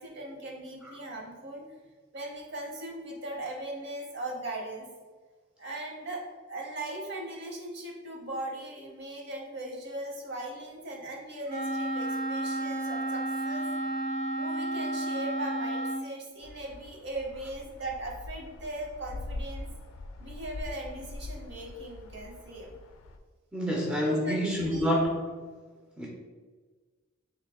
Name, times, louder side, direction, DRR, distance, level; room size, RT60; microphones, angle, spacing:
voice 1, 0.0-1.6 2.1-4.9 5.6-6.2 6.5-13.7 14.3-19.7 20.2-22.7 24.0-24.9, right 1 dB, 55° right, 0 dB, 0.8 m, -39 dB
Wind instrument woodwind instrument, 11.5-16.0, right 1 dB, 80° right, 1.4 m, -31 dB
sound 1, 16.4-23.2, left 2 dB, 75° left, 0.3 m, -43 dB
voice 2, 23.5-25.3 26.0-26.1, equal, 5° right, -3 dB, 0.3 m, -28 dB
3.1 x 3.0 x 3.5 m, 1.4 s
head